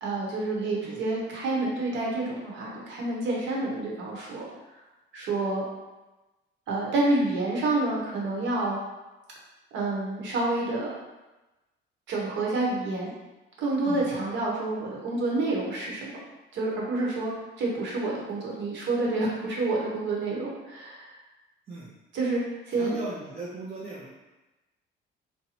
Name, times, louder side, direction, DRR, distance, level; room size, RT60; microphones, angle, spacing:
voice 1, 0.0-4.5 5.1-5.6 6.7-8.8 9.7-10.9 12.1-13.1 13.6-16.1 16.5-17.3 17.6-21.2 22.1-22.4 22.7-23.0, right 2 dB, 70° right, -3 dB, 1.0 m, -28 dB
voice 2, 22.7-24.1, right 2 dB, 30° right, -6 dB, 0.5 m, -37 dB
2.8 x 2.2 x 4.1 m, 1.1 s
cardioid pair, 145°, 20 cm